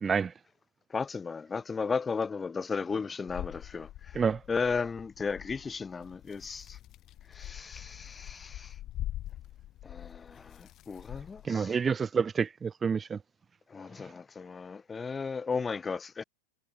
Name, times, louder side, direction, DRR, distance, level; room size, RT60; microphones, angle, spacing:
voice 1, 0.0-0.3 4.2-4.4 11.4-13.2, right 6 dB, 15° right, 0.4 m, -28 dB
voice 2, 0.9-4.2 4.5-6.8 7.3-8.8 9.8-11.8 13.7-16.2, left 5 dB, 15° left, 1.2 m, -35 dB
sound 1, 3.3-11.5, left 14 dB, 35° left, 1.4 m, -44 dB
figure-of-eight pair, 90°, 0 cm